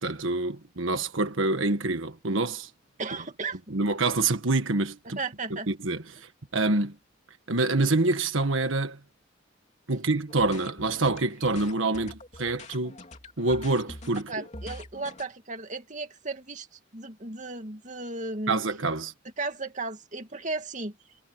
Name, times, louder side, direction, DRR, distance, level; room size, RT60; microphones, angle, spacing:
voice 1, 0.0-2.7 3.7-5.2 5.5-6.0 6.5-6.9 7.5-9.0 9.9-13.0 13.4-14.2 18.5-19.1, right 2 dB, 85° right, 1.5 m, -26 dB
voice 2, 3.0-3.6 5.2-5.7 14.3-16.7 16.9-18.6 19.4-20.9, right 3 dB, 40° right, 2.4 m, -35 dB
sound 1, 10.3-15.2, left 2 dB, 35° left, 3.3 m, -44 dB
head